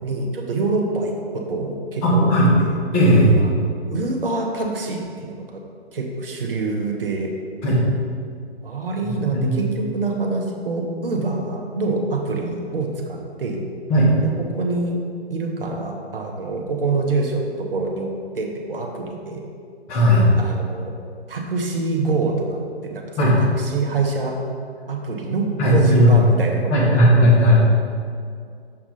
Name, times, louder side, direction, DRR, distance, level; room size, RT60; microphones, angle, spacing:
voice 1, 0.0-2.3 2.6-2.8 3.7-5.5 5.9-7.3 8.6-13.6 14.2-15.0 15.3-18.1 18.3-19.4 20.4-20.9 21.3-24.4 24.9-27.0, right 3 dB, 55° right, 1 dB, 1.0 m, -25 dB
voice 2, 2.0-2.5 2.9-3.3 7.6-7.8 9.3-9.5 13.9-14.1 19.9-20.2 23.2-23.4 25.6-26.2 26.7-27.5, equal, 20° left, -7 dB, 1.5 m, -15 dB
6.5 x 5.8 x 3.8 m, 2.2 s
figure-of-eight pair, 135°, 33 cm